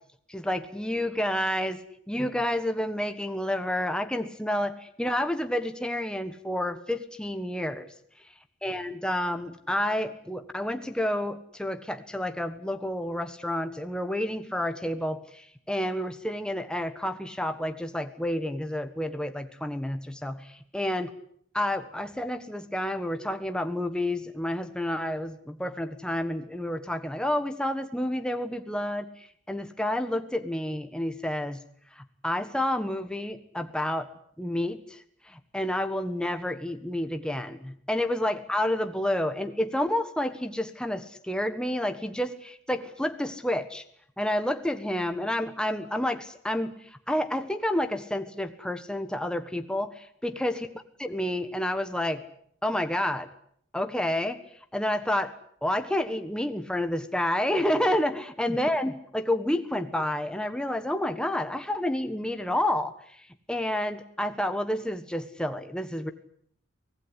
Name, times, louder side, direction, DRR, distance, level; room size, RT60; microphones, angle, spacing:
voice 1, 0.3-7.9 8.6-21.1 21.5-31.6 32.0-34.1 34.4-35.0 35.3-43.8 44.2-50.7 51.0-52.2 52.6-53.3 53.7-54.4 54.7-55.3 55.6-62.9 63.5-66.1, left 1 dB, 5° left, 8 dB, 1.4 m, -29 dB
24.5 x 18.5 x 9.9 m, 0.67 s
head